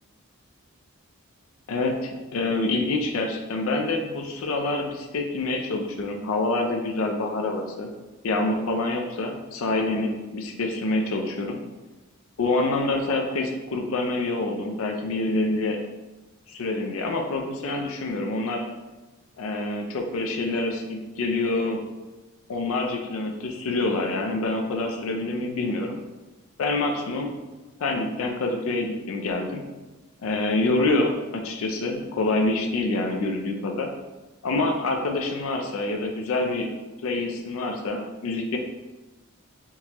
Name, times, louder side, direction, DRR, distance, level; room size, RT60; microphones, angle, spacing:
voice 1, 1.7-7.9 8.2-11.6 12.4-15.8 16.5-18.7 19.4-21.8 22.5-26.0 26.6-27.3 27.8-29.6 30.2-33.9 34.4-36.7 37.0-38.6, left 2 dB, 75° left, 3 dB, 0.4 m, -26 dB
3.5 x 2.8 x 2.9 m, 1.2 s
head